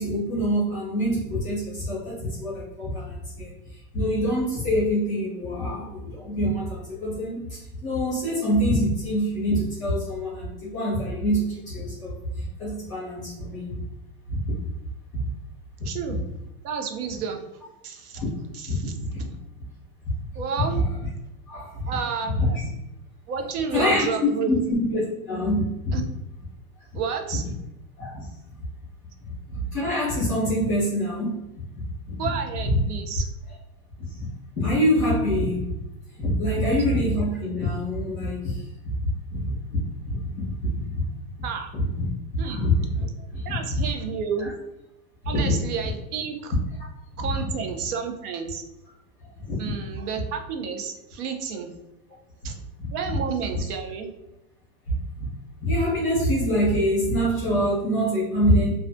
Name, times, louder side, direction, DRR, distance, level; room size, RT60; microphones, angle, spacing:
voice 1, 0.0-13.8 14.3-14.5 16.1-16.2 18.2-18.3 18.7-19.3 21.5-21.8 22.3-22.6 23.7-24.1 24.5-26.0 28.0-28.3 29.2-31.5 32.1-32.3 32.6-32.8 34.1-34.3 34.6-35.8 36.2-38.9 39.3-41.1 41.7-43.0 43.3-43.8 44.4-44.5 45.2-45.5 47.2-47.4 49.2-49.6 52.8-53.2 55.6-58.7, equal, 15° left, -13 dB, 0.3 m, -25 dB
voice 2, 15.8-16.2 16.6-17.4 17.8-18.2 18.5-18.9 20.4-20.8 21.9-22.6 23.3-24.5 25.9-26.0 26.9-27.4 32.2-33.3 36.5-36.6 41.4-41.7 42.4-42.6 43.4-44.5 45.3-46.6 47.2-48.6 49.6-51.7 52.4-52.6 52.9-54.1, right 6 dB, 80° right, 4 dB, 0.6 m, -31 dB
2.3 x 2.1 x 2.5 m, 0.89 s
supercardioid pair, 175°, 44 cm